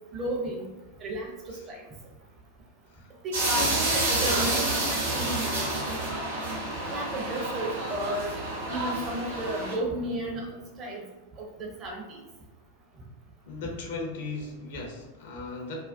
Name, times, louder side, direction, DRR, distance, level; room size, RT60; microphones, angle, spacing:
voice 1, 0.1-0.7 1.0-1.3 1.7-1.8 3.2-5.3 6.9-8.3 8.7-10.5 10.8-11.0 11.4-12.2, right 1 dB, 30° right, -1 dB, 0.5 m, -33 dB
sound 1, 3.3-9.7, right 2 dB, 65° right, 0.7 m, -29 dB
voice 2, 13.5-15.9, left 3 dB, 55° left, 0 dB, 0.5 m, -37 dB
2.4 x 2.0 x 2.5 m, 1.1 s
figure-of-eight pair, 90°, 0 cm